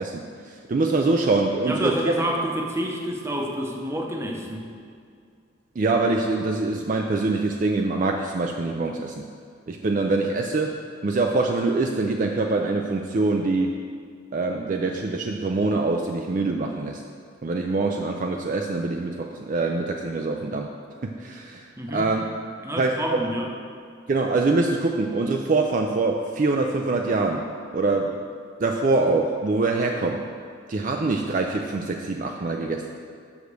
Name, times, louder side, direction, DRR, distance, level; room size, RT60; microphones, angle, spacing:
voice 1, 0.0-2.2 5.8-9.2 9.7-10.8 11.0-13.8 14.3-17.0 17.4-20.7 21.0-22.3 22.8-23.3 24.1-27.4 27.7-28.1 28.6-30.2 30.7-32.9, right 3 dB, 40° right, 2 dB, 0.4 m, -24 dB
voice 2, 1.7-4.7 21.8-22.1 22.6-23.5, equal, 15° right, 0 dB, 0.7 m, -28 dB
6.4 x 4.9 x 6.6 m, 2.2 s
head